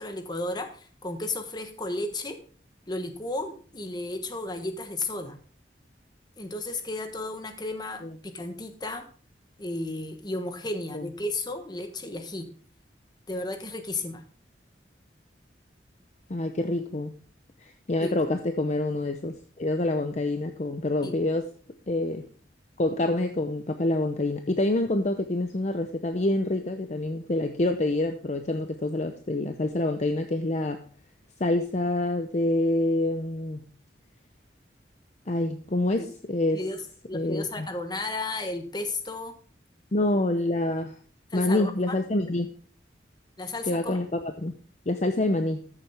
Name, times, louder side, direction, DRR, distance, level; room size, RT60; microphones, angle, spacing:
voice 1, 0.0-2.4 2.9-5.4 6.4-9.1 9.6-12.5 13.3-14.2 18.0-18.1 21.0-21.2 35.9-36.1 36.5-39.3 41.3-42.0 43.4-44.0, left 2 dB, 25° left, 7 dB, 1.2 m, -33 dB
voice 2, 16.3-17.1 17.6-21.5 21.9-22.3 22.8-30.8 31.4-33.7 35.3-36.6 37.1-37.7 39.9-41.0 41.3-42.5 43.7-44.5 44.9-45.6, left 2 dB, 40° left, 7 dB, 0.7 m, -27 dB
13.5 x 7.3 x 3.5 m, 0.41 s
head